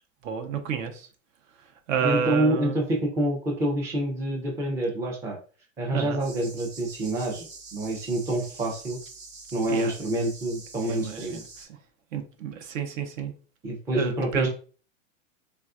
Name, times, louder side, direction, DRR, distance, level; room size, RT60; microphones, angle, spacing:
voice 1, 0.2-1.1 1.9-2.8 5.9-6.2 9.7-9.9 10.8-11.8 12.1-13.3 13.9-14.5, right 7 dB, 70° right, 7 dB, 0.7 m, -30 dB
voice 2, 2.0-5.4 5.8-9.0 9.5-11.4 13.6-14.5, right 1 dB, 10° right, -1 dB, 0.3 m, -27 dB
sound 1, 6.2-11.7, right 3 dB, 25° right, 0.9 m, -45 dB
3.3 x 2.4 x 2.4 m, 0.40 s
supercardioid pair, 130°, 40 cm